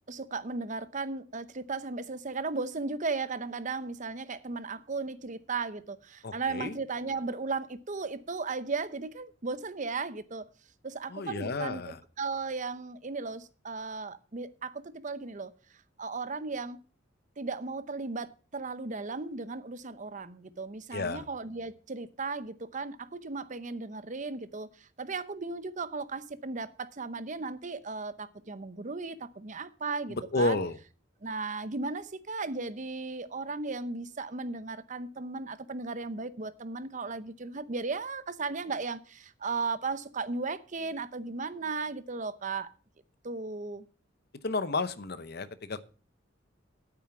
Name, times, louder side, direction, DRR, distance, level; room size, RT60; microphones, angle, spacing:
voice 1, 0.1-10.5 10.8-15.5 16.0-16.8 17.4-30.6 31.2-42.7 43.2-43.9, right 4 dB, 40° right, 0.8 m, -36 dB
voice 2, 6.2-6.8 11.1-12.0 20.9-21.2 30.1-30.8 44.4-45.8, left 3 dB, 55° left, 0.8 m, -31 dB
9.3 x 8.7 x 5.9 m
head